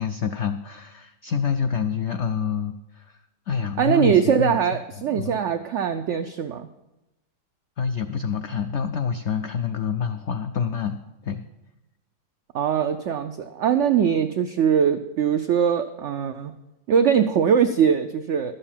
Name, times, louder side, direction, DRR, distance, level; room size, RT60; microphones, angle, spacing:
voice 1, 0.0-3.2 3.5-4.6 5.1-5.4 7.8-11.4, left 6 dB, 85° left, 7 dB, 0.6 m, -27 dB
voice 2, 3.8-6.7 12.5-16.5 16.9-18.5, right 8 dB, 85° right, 8 dB, 0.6 m, -21 dB
12.0 x 6.8 x 7.2 m, 0.96 s
omnidirectional pair, 1.8 m